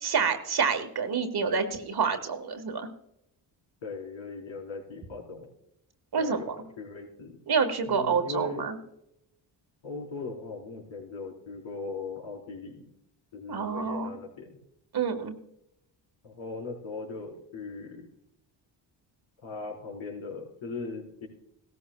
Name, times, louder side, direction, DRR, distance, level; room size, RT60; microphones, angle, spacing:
voice 1, 0.0-2.9 6.1-6.5 7.5-8.7 13.5-14.1 14.9-15.4, right 5 dB, 50° right, 7 dB, 1.5 m, -28 dB
voice 2, 3.8-5.5 6.2-7.4 7.9-8.7 9.8-12.8 13.3-14.6 16.2-18.1 19.4-21.3, left 3 dB, 70° left, -2 dB, 4.3 m, -39 dB
17.0 x 14.0 x 2.3 m, 0.82 s
cardioid pair, 70°, 48 cm